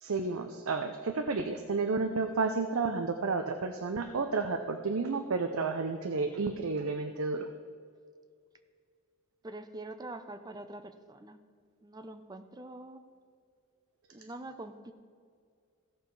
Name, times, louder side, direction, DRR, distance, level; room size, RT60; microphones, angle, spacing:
voice 1, 0.0-7.5, right 4 dB, 75° right, 7 dB, 0.6 m, -31 dB
voice 2, 9.4-11.4 11.8-13.0 14.1-14.9, right 2 dB, 20° right, 9 dB, 0.5 m, -44 dB
16.0 x 6.5 x 4.6 m, 2.2 s
head